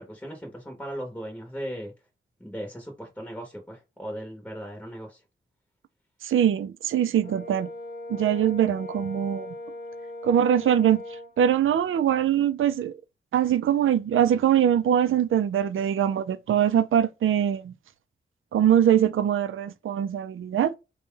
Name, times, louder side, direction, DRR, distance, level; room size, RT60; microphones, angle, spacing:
voice 1, 0.0-1.9 2.4-5.2, equal, 5° left, 0.9 m, -37 dB
voice 2, 6.2-7.7 8.1-9.5 10.2-11.0 11.4-12.9 13.3-17.7 18.5-20.7, right 9 dB, 85° right, 0.5 m, -22 dB
Brass instrument, 7.2-11.3, left 2 dB, 45° left, 1.1 m, -39 dB
4.0 x 2.3 x 3.7 m
wide cardioid pair, 165°, 20 cm